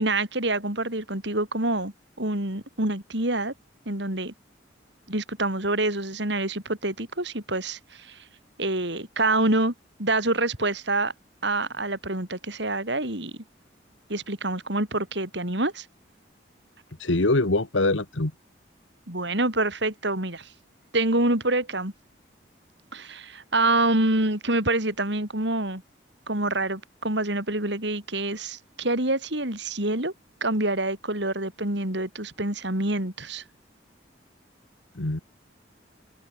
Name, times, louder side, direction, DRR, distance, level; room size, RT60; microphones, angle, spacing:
voice 1, 0.0-1.9 2.2-3.5 3.9-4.3 5.1-8.2 8.6-9.7 10.0-11.1 11.4-13.3 14.1-15.9 19.1-20.5 20.9-21.9 22.9-25.8 26.3-30.1 30.4-33.4, right 2 dB, 65° right, 5.3 m, -26 dB
voice 2, 17.0-18.3 35.0-35.2, left 2 dB, 80° left, 1.8 m, -23 dB
head